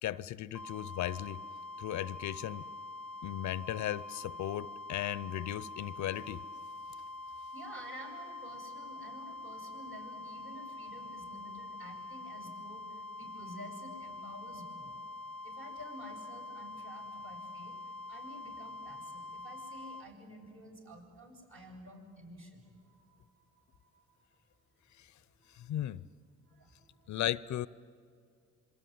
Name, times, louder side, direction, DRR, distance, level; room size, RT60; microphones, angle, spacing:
voice 1, 0.0-1.4 1.8-2.6 3.2-6.4 25.0-25.1 25.5-26.0 27.1-27.7, left 13 dB, 70° left, 0.7 m, -36 dB
sound 1, 0.5-20.1, left 2 dB, 5° left, 0.9 m, -45 dB
voice 2, 7.5-14.9 15.4-17.8 18.1-24.2 24.8-25.0 25.3-25.7 26.4-27.2, equal, 45° right, 7.9 m, -51 dB
26.5 x 23.5 x 9.5 m
cardioid pair, 90°, 30 cm